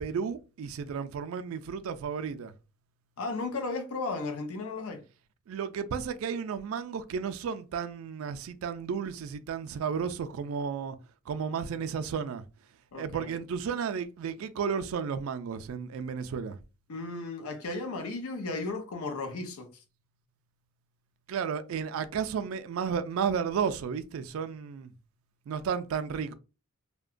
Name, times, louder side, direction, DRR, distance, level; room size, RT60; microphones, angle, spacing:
voice 1, 0.0-2.5 5.5-11.0 11.3-12.4 12.9-16.6 21.3-24.9 25.5-26.3, right 6 dB, 70° right, 0.3 m, -33 dB
voice 2, 3.2-5.0 12.9-13.4 16.9-19.7, left 3 dB, 80° left, 0.5 m, -35 dB
2.8 x 2.1 x 2.4 m
head